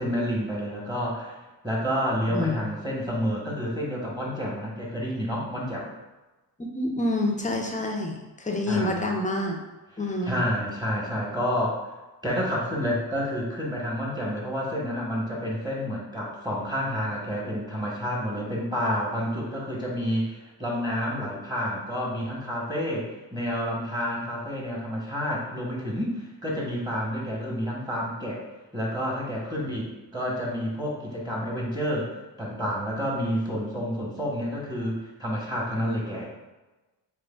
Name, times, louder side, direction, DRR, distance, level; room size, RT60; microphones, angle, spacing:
voice 1, 0.0-1.4 1.6-5.9 8.7-9.0 10.2-11.8 12.2-28.4 28.7-36.3, equal, 10° right, -4 dB, 1.4 m, -29 dB
voice 2, 6.7-9.6 10.0-10.5, left 1 dB, 15° left, 1 dB, 0.8 m, -27 dB
4.9 x 2.5 x 2.4 m, 1.1 s
hypercardioid pair, 40°, 49 cm